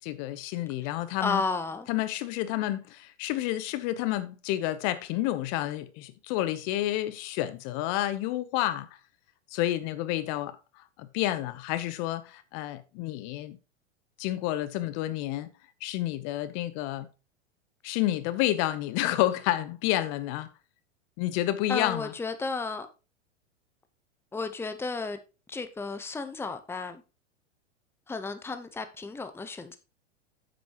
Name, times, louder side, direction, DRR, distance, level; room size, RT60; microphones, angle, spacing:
voice 1, 0.0-1.4 1.9-8.9 9.5-13.6 14.2-15.5 15.8-17.1 17.8-20.5 21.2-22.1, left 14 dB, 45° left, 1.0 m, -30 dB
voice 2, 1.2-1.9 21.7-22.9 24.3-25.2 25.5-27.0 28.1-29.8, left 4 dB, 5° left, 0.9 m, -33 dB
9.3 x 7.8 x 3.0 m
hypercardioid pair, 100°, 37 cm